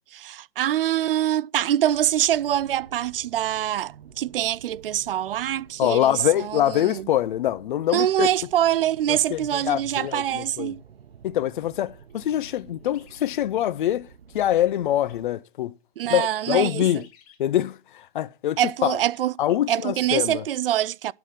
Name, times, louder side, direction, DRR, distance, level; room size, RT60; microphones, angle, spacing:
voice 1, 0.1-7.1 7.9-10.8 16.0-17.0 18.6-19.3 19.7-21.1, right 12 dB, 65° right, 0.5 m, -24 dB
sound 1, 1.9-15.3, right 7 dB, 80° right, 0.9 m, -50 dB
sound 2, 5.1-5.2 7.8-8.0 9.1-9.2 9.6-10.6 11.9-13.4 15.0-15.2 15.8-15.9 16.4-16.5 16.8-17.4 19.1-19.2, left 9 dB, 35° left, 1.9 m, -56 dB
voice 2, 5.8-8.3 9.1-10.7 11.2-14.1 14.3-15.7 16.1-17.0 17.4-19.0 19.4-20.4, left 12 dB, 55° left, 0.5 m, -24 dB
11.5 x 3.9 x 7.5 m
hypercardioid pair, 140°, 30 cm